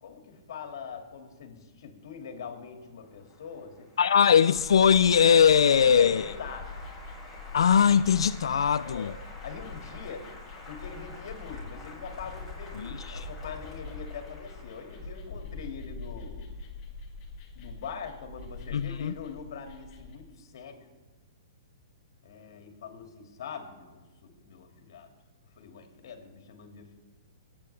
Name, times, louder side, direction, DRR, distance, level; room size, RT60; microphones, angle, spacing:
voice 1, 0.0-3.9 4.2-4.3 5.8-6.8 8.8-9.1 9.4-10.3 10.7-16.4 17.5-20.8 22.2-25.1 25.6-27.0, left 6 dB, 65° left, 2.1 m, -43 dB
Applause, 3.0-15.4, left 2 dB, 5° left, 4.0 m, -49 dB
voice 2, 4.0-6.3 7.5-9.1 12.8-13.3 18.7-19.1, left 7 dB, 85° left, 0.4 m, -21 dB
sound 1, 4.5-20.2, left 3 dB, 30° left, 2.1 m, -44 dB
22.0 x 8.7 x 3.4 m
hypercardioid pair, 150°, 3 cm